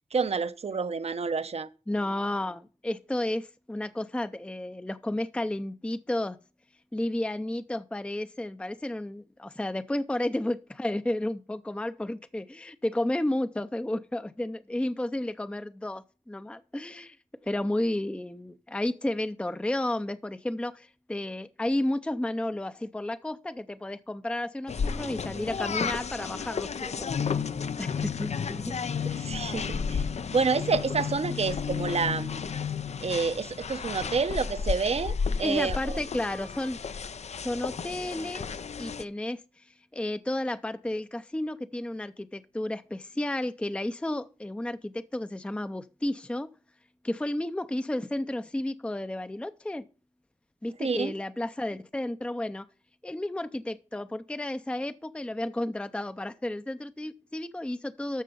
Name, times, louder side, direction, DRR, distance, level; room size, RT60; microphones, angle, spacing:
voice 1, 0.1-1.7 29.2-30.0 30.3-32.4 33.0-36.0 50.8-51.1, right 5 dB, 55° right, 0.7 m, -28 dB
voice 2, 1.9-6.4 6.9-17.2 17.4-27.1 27.8-28.7 29.1-29.3 35.4-36.8 37.4-38.5 38.8-46.5 47.0-49.8 50.6-52.7 53.0-58.2, left 1 dB, 10° left, 0.5 m, -32 dB
sound 1, 24.7-39.0, left 6 dB, 65° left, 0.5 m, -32 dB
13.0 x 6.7 x 5.3 m
wide cardioid pair, 115°, 12 cm